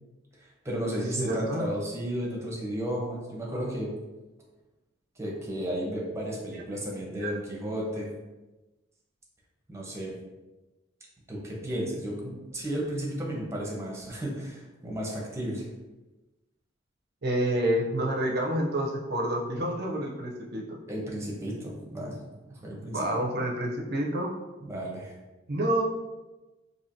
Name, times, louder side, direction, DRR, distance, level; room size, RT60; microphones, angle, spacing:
voice 1, 0.4-3.9 5.2-8.1 9.7-10.1 11.3-15.7 20.9-22.2 22.5-23.1 24.6-25.1, equal, 15° right, -3 dB, 0.9 m, -33 dB
voice 2, 1.2-1.6 7.2-7.3 17.2-20.8 22.9-24.3 25.5-25.8, right 1 dB, 55° right, 0 dB, 0.6 m, -28 dB
4.4 x 2.8 x 2.7 m, 1.1 s
head